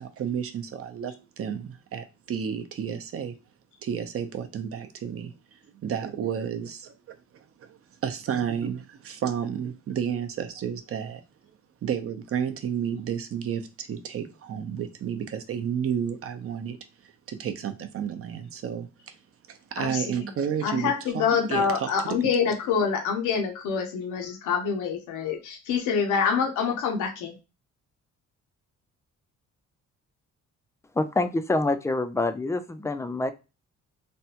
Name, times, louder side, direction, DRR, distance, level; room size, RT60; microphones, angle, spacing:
voice 1, 0.0-3.3 3.8-11.2 11.8-19.2 19.5-22.1, right 8 dB, 50° right, 8 dB, 0.6 m, -32 dB
voice 2, 19.8-20.3 20.6-27.4, left 6 dB, 85° left, 3 dB, 0.7 m, -26 dB
voice 3, 31.0-33.3, left 2 dB, 10° left, 10 dB, 0.3 m, -26 dB
3.4 x 2.2 x 2.8 m, 0.28 s
cardioid pair, 90°, 30 cm